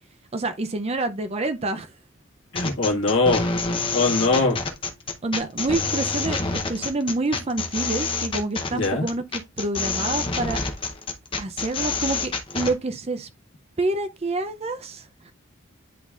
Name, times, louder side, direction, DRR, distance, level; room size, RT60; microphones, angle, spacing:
voice 1, 0.3-1.9 2.9-3.0 5.2-6.4 6.7-9.2 9.6-10.6 11.4-13.3 13.8-15.0, right 2 dB, 30° right, 0.5 m, -27 dB
voice 2, 2.5-3.5 3.9-4.6 8.7-9.1, left 3 dB, 60° left, 1.6 m, -21 dB
sound 1, 2.5-12.7, left 4 dB, 25° left, 0.7 m, -27 dB
10.0 x 4.0 x 2.4 m
head